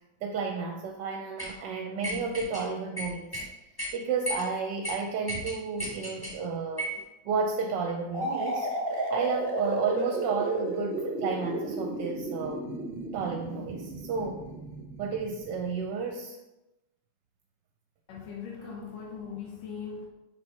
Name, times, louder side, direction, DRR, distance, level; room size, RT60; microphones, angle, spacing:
voice 1, 0.2-3.4 3.9-6.9 7.2-8.7 9.1-12.7 13.1-14.4 15.0-16.4, right 5 dB, 75° right, 3 dB, 1.2 m, -32 dB
sound 1, 1.4-1.5 2.0-2.6 3.0-3.5 3.8-3.9 4.3-4.5 4.8-4.9 5.3-6.4 6.8-7.0, equal, 15° left, 1.3 m, -34 dB
sound 2, 8.1-15.8, right 2 dB, 40° right, 0.9 m, -33 dB
voice 2, 18.1-20.1, left 6 dB, 75° left, -1 dB, 1.5 m, -40 dB
5.2 x 4.5 x 4.2 m, 0.97 s
omnidirectional pair, 2.0 m